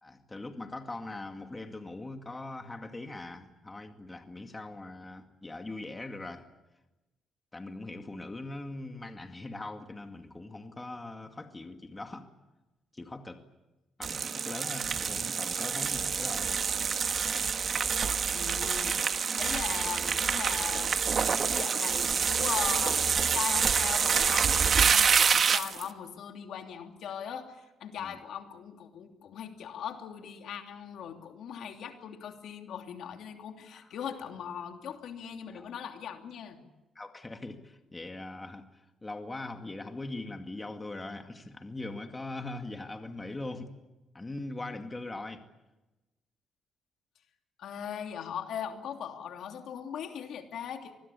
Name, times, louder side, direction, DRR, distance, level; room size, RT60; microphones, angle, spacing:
voice 1, 0.0-6.4 7.5-12.3 12.9-13.4 14.0-16.5 28.0-28.2 33.7-33.9 35.5-35.7 37.0-38.7 39.0-43.7 44.1-45.4, left 2 dB, 20° left, 6 dB, 2.2 m, -41 dB
sound 1, 14.0-25.9, right 6 dB, 50° right, 1.3 m, -27 dB
voice 2, 18.3-20.9 21.3-36.6 47.6-50.9, left 8 dB, 75° left, 4 dB, 2.9 m, -39 dB
25.0 x 20.5 x 8.5 m, 1.1 s
cardioid pair, 90°, 0 cm